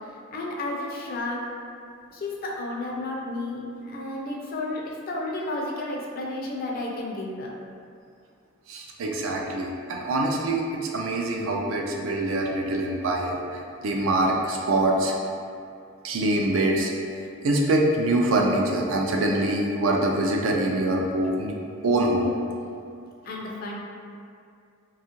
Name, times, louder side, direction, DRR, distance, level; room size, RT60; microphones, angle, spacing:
voice 1, 0.3-1.5 2.1-7.5 23.2-23.8, left 2 dB, 45° left, -2 dB, 0.4 m, -32 dB
voice 2, 8.7-15.1 16.0-16.9 17.4-21.5 21.8-22.3, right 1 dB, 75° right, 0 dB, 0.4 m, -24 dB
2.7 x 2.3 x 2.9 m, 2.4 s
head